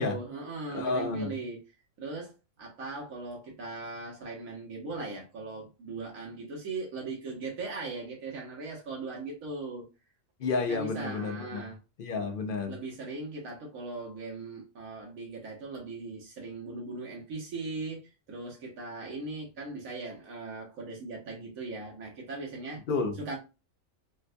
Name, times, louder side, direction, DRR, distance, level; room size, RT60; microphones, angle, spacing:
voice 1, 0.0-1.6 2.0-2.3 2.6-9.9 10.7-11.8 12.7-22.8 23.2-23.4, right 3 dB, 90° right, 1.4 m, -39 dB
voice 2, 0.7-1.3 10.4-11.7 12.0-12.7 22.9-23.2, left 4 dB, 55° left, 0.6 m, -31 dB
4.4 x 2.2 x 2.5 m
omnidirectional pair, 1.4 m